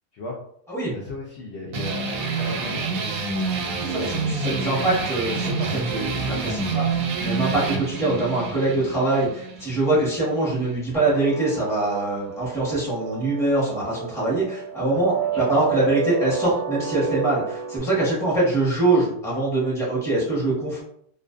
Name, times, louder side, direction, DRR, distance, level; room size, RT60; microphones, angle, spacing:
voice 1, 0.9-3.4 14.9-15.0 15.4-15.6, left 2 dB, 75° left, -2 dB, 0.6 m, -36 dB
sound 1, 1.7-10.8, right 4 dB, 90° right, 1.2 m, -27 dB
voice 2, 3.8-20.8, right 2 dB, ahead, -7 dB, 0.7 m, -23 dB
sound 2, 10.9-17.8, right 9 dB, 70° right, 0.7 m, -31 dB
2.5 x 2.3 x 2.3 m, 0.68 s
omnidirectional pair, 1.7 m